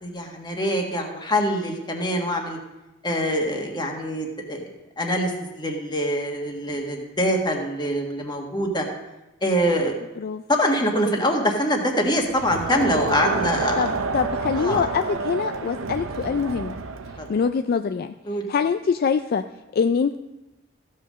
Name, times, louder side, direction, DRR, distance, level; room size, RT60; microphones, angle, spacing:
voice 1, 0.0-2.6 3.0-4.7 5.0-8.8 9.4-10.0 10.5-13.9 14.6-14.8 17.2-17.3 18.3-18.5, equal, 20° left, 1 dB, 1.5 m, -24 dB
Crowd, 12.3-17.4, right 4 dB, 85° right, 0.7 m, -29 dB
voice 2, 13.8-16.8 17.3-18.1 18.5-19.4 19.7-20.2, left 6 dB, 50° left, 8 dB, 0.3 m, -24 dB
14.5 x 5.6 x 6.2 m, 1.0 s
head